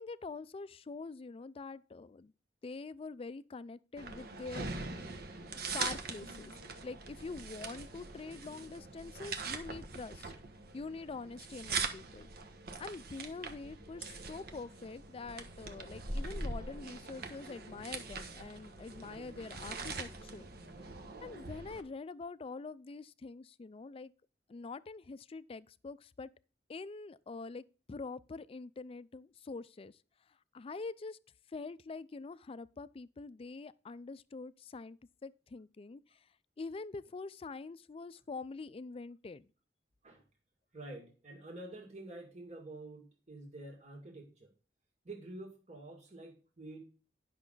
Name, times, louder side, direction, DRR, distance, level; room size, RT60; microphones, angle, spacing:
voice 1, 0.0-2.3 2.6-4.7 5.7-6.5 6.8-10.3 10.7-12.3 12.8-20.5 21.2-24.1 24.5-26.3 26.7-30.0 30.3-31.2 31.5-36.3 36.6-39.5, left 4 dB, 35° left, 0.4 m, -45 dB
sound 1, 4.0-21.8, right 4 dB, 60° right, 1.2 m, -42 dB
voice 2, 40.7-44.5 45.0-46.8, right 2 dB, 40° right, 2.2 m, -48 dB
10.5 x 6.0 x 3.9 m
head